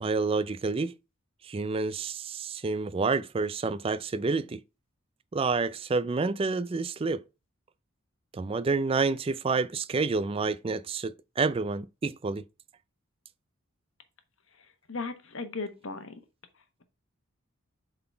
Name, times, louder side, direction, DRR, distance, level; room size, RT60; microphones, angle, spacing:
voice 1, 0.0-0.9 1.4-4.6 5.3-7.2 8.3-12.4, right 4 dB, 25° right, 0.3 m, -29 dB
voice 2, 14.6-16.1, left 3 dB, 65° left, 1.2 m, -37 dB
7.6 x 3.9 x 4.4 m
head